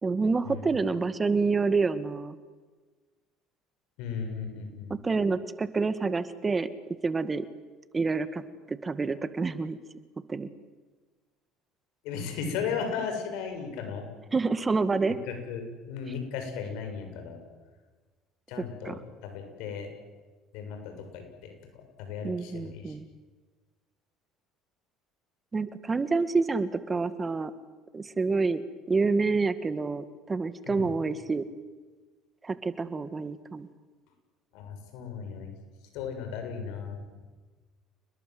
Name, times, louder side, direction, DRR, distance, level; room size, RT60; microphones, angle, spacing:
voice 1, 0.0-2.4 4.9-6.7 7.0-7.5 7.9-8.4 8.7-9.8 10.3-10.5 14.3-15.2 18.8-19.0 22.2-23.1 25.5-27.5 27.9-28.6 28.9-31.4 32.4-33.7, right 4 dB, 25° right, 12 dB, 1.8 m, -28 dB
voice 2, 4.0-4.9 12.0-14.1 15.3-17.4 18.5-19.0 19.2-19.9 20.5-21.5 22.0-22.9 30.7-30.9 34.5-35.5 35.9-37.0, left 6 dB, 75° left, 5 dB, 7.1 m, -36 dB
29.5 x 21.0 x 7.8 m, 1.3 s
supercardioid pair, 80°, 0 cm